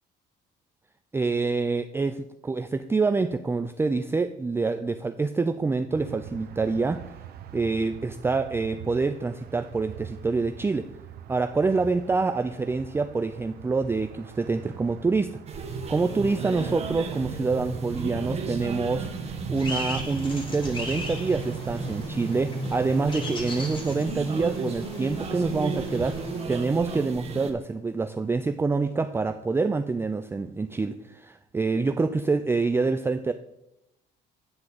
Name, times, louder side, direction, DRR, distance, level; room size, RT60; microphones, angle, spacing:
voice 1, 1.1-7.0 7.5-10.9 11.3-15.4 15.9-19.1 19.5-26.2 26.5-33.3, right 4 dB, 15° right, 8 dB, 0.4 m, -26 dB
sound 1, 5.9-22.1, right 10 dB, 65° right, 0.7 m, -43 dB
sound 2, 15.5-27.5, right 4 dB, 40° right, 1.3 m, -34 dB
sound 3, 19.6-26.4, left 1 dB, 30° left, 2.0 m, -39 dB
9.9 x 3.9 x 7.3 m, 0.84 s
cardioid pair, 110°, 17 cm